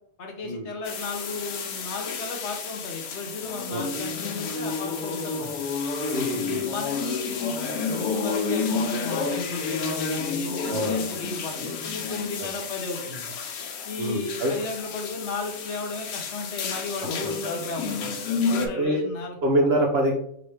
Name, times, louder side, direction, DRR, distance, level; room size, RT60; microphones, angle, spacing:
voice 1, 0.2-5.5 6.3-13.3 13.9-19.4, left 3 dB, 60° left, 2 dB, 0.9 m, -35 dB
sound 1, 0.8-18.7, left 5 dB, 90° left, 1.2 m, -30 dB
voice 2, 6.1-6.6 10.7-11.1 12.4-12.5 14.0-14.5 18.6-19.0 19.4-20.1, right 1 dB, 60° right, 1 dB, 0.7 m, -25 dB
4.7 x 3.0 x 3.2 m, 0.70 s
omnidirectional pair, 1.5 m